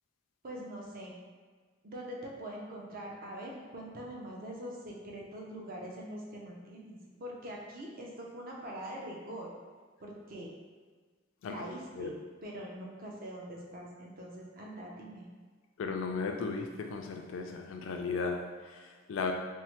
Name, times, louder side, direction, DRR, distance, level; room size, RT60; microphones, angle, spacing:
voice 1, 0.4-1.1 1.8-9.5 10.0-10.5 11.5-12.2 12.4-15.3, right 1 dB, 45° right, -2 dB, 0.5 m, -43 dB
voice 2, 15.8-19.3, left 4 dB, 75° left, 3 dB, 0.3 m, -35 dB
3.1 x 2.0 x 2.8 m, 1.5 s
head